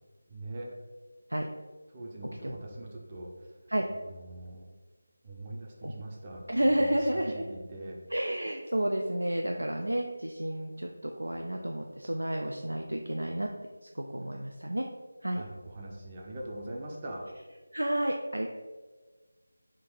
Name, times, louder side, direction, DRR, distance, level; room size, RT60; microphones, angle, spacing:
voice 1, 0.3-0.7 1.9-3.3 4.2-4.6 5.2-8.0 15.3-17.2, right 1 dB, 25° right, -2 dB, 0.6 m, -42 dB
voice 2, 6.5-7.4 8.1-13.5 13.8-14.9 15.2-15.4 17.7-18.5, right 1 dB, 80° right, 2 dB, 0.3 m, -31 dB
3.6 x 2.5 x 4.4 m, 1.3 s
figure-of-eight pair, 165°, 0 cm